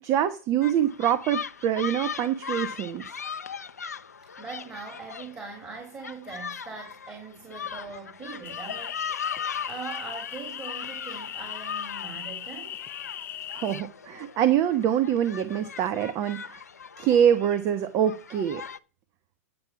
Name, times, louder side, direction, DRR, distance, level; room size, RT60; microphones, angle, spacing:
voice 1, 0.0-3.1 13.5-16.6 17.0-18.6, right 10 dB, 35° right, 1.0 m, -25 dB
sound 1, 0.6-18.8, left 7 dB, 90° left, 0.6 m, -39 dB
voice 2, 4.4-9.3 9.7-12.8, right 5 dB, 20° right, 3.3 m, -41 dB
sound 2, 8.4-13.8, left 10 dB, 25° left, 0.5 m, -38 dB
9.5 x 7.1 x 5.8 m
hypercardioid pair, 110°, 8 cm